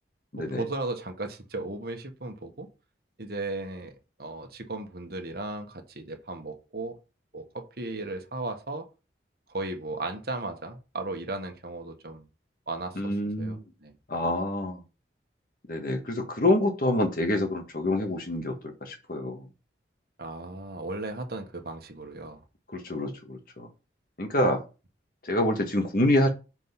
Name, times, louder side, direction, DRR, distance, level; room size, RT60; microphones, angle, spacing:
voice 1, 0.4-2.7 3.2-3.9 4.2-7.0 7.3-8.9 9.5-12.2 12.7-14.0 20.2-22.4, right 2 dB, 55° right, 1.4 m, -36 dB
voice 2, 12.9-13.6 14.1-14.8 15.7-18.5 18.8-19.5 22.7-23.7 24.2-24.6 25.2-26.3, left 1 dB, 50° left, 1.6 m, -26 dB
6.4 x 4.6 x 5.7 m
head